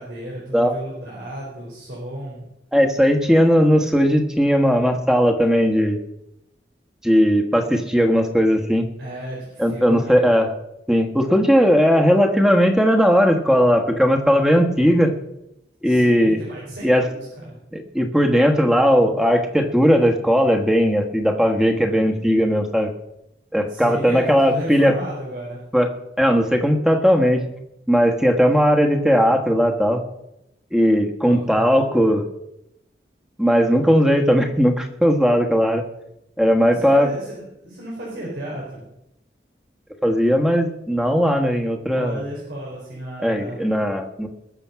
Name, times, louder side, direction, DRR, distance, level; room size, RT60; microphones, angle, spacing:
voice 1, 0.0-2.5 9.0-10.4 15.8-17.6 23.7-25.6 31.2-31.8 36.7-38.8 41.9-43.6, right 1 dB, 85° right, -5 dB, 4.6 m, -34 dB
voice 2, 2.7-6.0 7.0-8.9 9.6-10.5 10.9-15.1 15.8-16.4 16.8-17.0 17.7-22.9 23.5-24.9 25.7-25.9 26.2-27.4 27.9-30.0 30.7-32.2 33.4-35.8 36.4-37.1 40.0-42.2 43.2-44.3, equal, 5° right, 4 dB, 1.3 m, -17 dB
20.5 x 6.9 x 5.8 m, 0.84 s
head